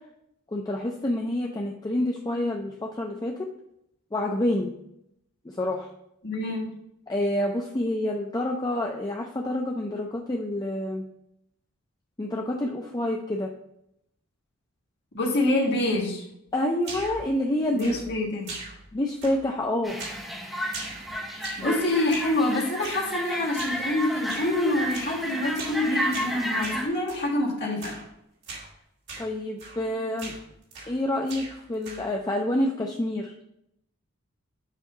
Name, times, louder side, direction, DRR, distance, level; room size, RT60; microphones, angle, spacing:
voice 1, 0.5-3.5 4.1-4.8 5.4-5.9 7.1-11.0 12.2-13.5 16.5-17.9 18.9-20.0 21.6-21.7 29.2-30.3 30.9-33.3, left 1 dB, 20° left, 0 dB, 0.5 m, -28 dB
voice 2, 6.2-6.7 15.1-16.2 17.7-18.6 21.6-28.0, left 1 dB, 55° left, -4 dB, 1.6 m, -26 dB
sound 1, 16.8-17.3 17.8-18.2 18.5-18.9 19.2-19.6 20.0-20.3 20.7-21.7 22.1-22.4 22.8-23.1 23.6-23.9 24.3-24.5 24.9-25.2 25.6-25.8 26.1-27.3 27.8-28.1 28.4-28.7 29.1-29.3 29.6-29.9 30.2-31.0 31.3-32.2, right 3 dB, 55° right, 2.1 m, -40 dB
sound 2, 19.8-26.9, equal, ahead, 0.9 m, -32 dB
7.3 x 2.7 x 5.3 m, 0.78 s
head